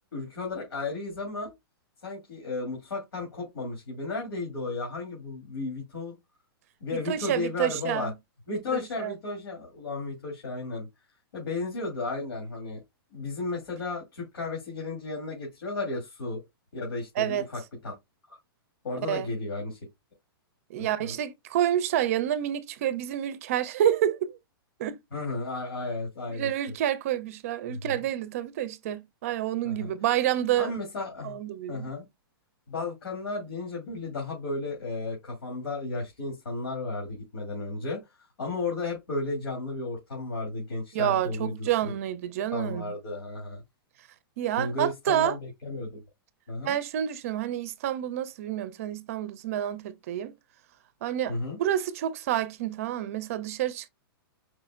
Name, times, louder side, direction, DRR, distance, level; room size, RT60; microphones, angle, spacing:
voice 1, 0.1-1.5 2.0-6.2 6.8-8.1 8.5-10.9 11.3-12.8 13.1-16.4 16.7-17.9 18.3-18.4 18.8-19.8 21.0-21.2 25.1-26.5 27.7-27.9 29.6-29.9 30.6-31.4 31.7-32.1 32.7-38.0 38.4-41.7 42.5-43.6 44.6-46.0 46.5-46.7 51.3-51.6, left 3 dB, 85° left, 2.5 m, -34 dB
voice 2, 6.9-8.1 8.5-9.1 17.2-17.4 19.1-19.3 20.7-24.4 24.8-25.0 26.3-30.7 31.2-31.9 40.9-42.9 44.4-45.4 46.6-50.3 51.0-53.9, right 11 dB, 35° right, 0.5 m, -28 dB
4.9 x 4.1 x 2.4 m
hypercardioid pair, 170°, 12 cm